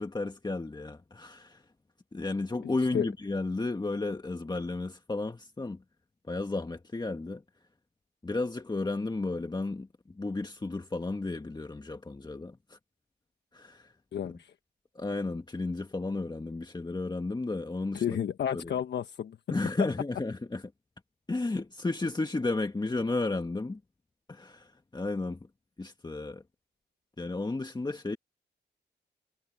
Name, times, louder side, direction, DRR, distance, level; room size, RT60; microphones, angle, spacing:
voice 1, 0.0-1.6 2.1-5.8 6.3-7.4 8.2-12.8 13.5-13.9 14.9-18.2 18.5-18.7 19.5-20.6 21.3-23.8 24.3-25.4 25.8-26.4 27.2-28.2, left 3 dB, 25° left, 1.6 m, -33 dB
voice 2, 2.6-3.1 14.1-14.5 17.9-19.4, left 9 dB, 75° left, 1.3 m, -32 dB
cardioid pair, 60°, 18 cm